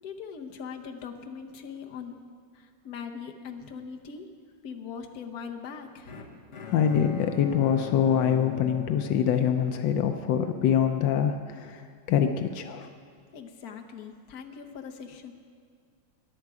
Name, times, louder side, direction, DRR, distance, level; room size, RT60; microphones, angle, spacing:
voice 1, 0.0-2.1 2.8-4.3 4.6-6.1 13.3-15.3, left 6 dB, 60° left, 4 dB, 1.4 m, -40 dB
Bowed string instrument, 6.1-10.3, left 4 dB, 45° left, 1.3 m, -41 dB
voice 2, 6.7-11.8 12.1-12.9, left 8 dB, 80° left, 7 dB, 1.4 m, -24 dB
21.0 x 10.5 x 4.9 m, 2.1 s
omnidirectional pair, 2.0 m